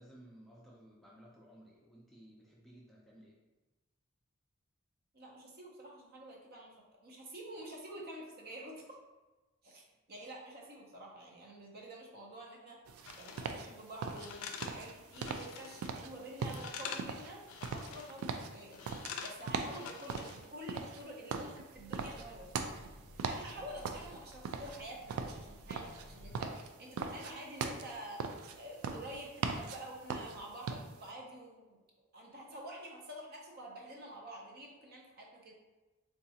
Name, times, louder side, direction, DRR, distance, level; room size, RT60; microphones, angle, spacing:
voice 1, 0.0-3.4, equal, ahead, -5 dB, 0.4 m, -57 dB
voice 2, 5.1-9.0 9.6-9.8 10.1-12.8 13.1-17.4 17.7-18.8 19.2-22.7 23.2-28.2 28.6-31.8 32.1-35.5, right 1 dB, 45° right, -1 dB, 0.6 m, -48 dB
sound 1, 12.9-31.1, right 5 dB, 90° right, 0.3 m, -41 dB
sound 2, 13.1-13.6 14.1-15.9 16.2-17.1 17.4-18.3 18.7-20.5 20.8-21.0, left 6 dB, 90° left, 0.3 m, -46 dB
Train, 21.7-26.7, equal, 45° left, 0.8 m, -55 dB
3.8 x 2.3 x 2.7 m, 1.2 s
head